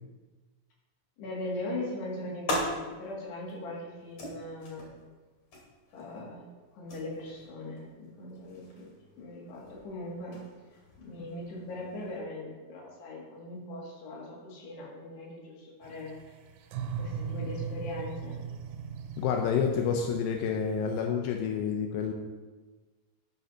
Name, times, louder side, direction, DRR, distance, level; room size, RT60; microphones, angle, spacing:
voice 1, 1.2-4.9 5.9-6.4 6.7-8.9 9.2-10.5 11.0-16.2 17.0-18.4, left 1 dB, 60° left, -4 dB, 4.0 m, -40 dB
sound 1, 1.7-12.2, left 1 dB, 45° left, 2.5 m, -41 dB
sound 2, 15.8-21.1, right 7 dB, 85° right, 3.5 m, -39 dB
voice 2, 19.2-22.1, left 7 dB, 85° left, 2 dB, 2.5 m, -29 dB
12.0 x 11.0 x 2.8 m, 1.3 s
omnidirectional pair, 5.8 m